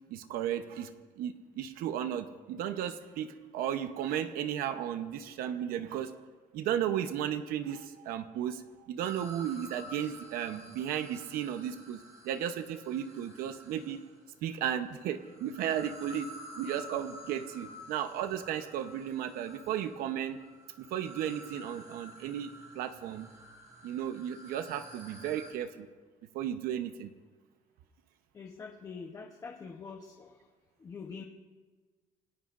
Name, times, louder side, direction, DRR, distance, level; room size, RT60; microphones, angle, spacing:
voice 1, 0.1-0.9 1.2-6.2 6.5-12.0 12.2-14.0 14.4-16.3 16.6-20.4 20.8-23.3 23.8-25.9 26.3-27.1, right 10 dB, 80° right, 9 dB, 0.9 m, -34 dB
sound 1, 9.0-14.2 15.0-25.5, right 1 dB, 25° right, 3.3 m, -50 dB
voice 2, 28.3-30.3 30.8-31.2, left 5 dB, 20° left, 1 dB, 0.9 m, -44 dB
27.0 x 20.0 x 2.6 m, 1.4 s
cardioid pair, 170°, 15 cm